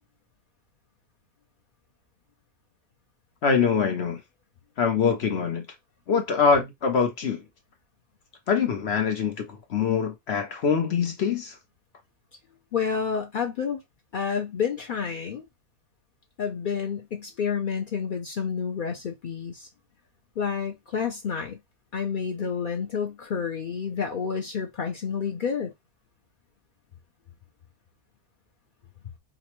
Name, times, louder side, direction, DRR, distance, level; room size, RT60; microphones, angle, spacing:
voice 1, 3.4-4.2 4.8-5.6 6.1-7.4 8.5-11.6, left 6 dB, 55° left, 0.8 m, -24 dB
voice 2, 12.7-13.8 14.1-15.5 16.4-19.7 20.4-21.6 21.9-25.7, left 6 dB, 90° left, 0.4 m, -29 dB
4.9 x 2.2 x 2.9 m
omnidirectional pair, 1.6 m